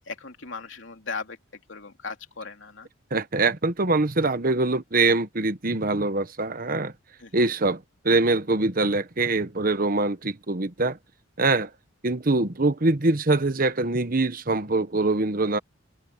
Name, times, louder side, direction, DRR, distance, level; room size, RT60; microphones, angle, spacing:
voice 1, 0.0-1.4 1.7-2.9 7.2-7.3, left 4 dB, 65° left, 3.1 m, -37 dB
voice 2, 3.1-6.9 7.3-11.0 11.4-11.7 12.0-15.6, right 3 dB, 45° right, 1.1 m, -23 dB
head